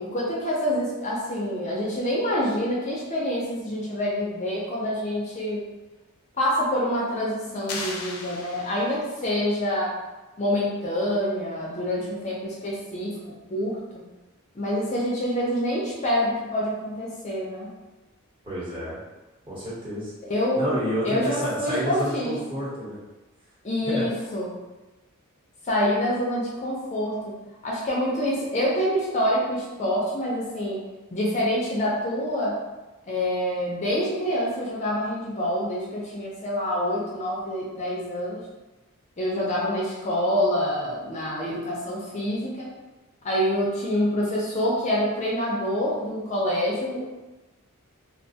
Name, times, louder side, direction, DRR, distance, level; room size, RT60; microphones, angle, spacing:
voice 1, 0.0-5.6 6.4-9.9 10.4-13.1 13.5-14.0 14.5-17.7 20.2-20.8 21.0-22.3 23.6-24.5 25.7-27.3 27.6-30.8 31.1-32.6 33.0-38.4 39.2-42.7 43.2-47.1, equal, 30° left, -5 dB, 0.5 m, -26 dB
sound 1, 7.7-9.2, left 3 dB, 80° left, 0.5 m, -36 dB
voice 2, 18.4-19.0 19.5-20.1 20.5-23.0 23.8-24.1, equal, 25° right, -10 dB, 1.0 m, -29 dB
2.4 x 2.2 x 2.7 m, 1.1 s
head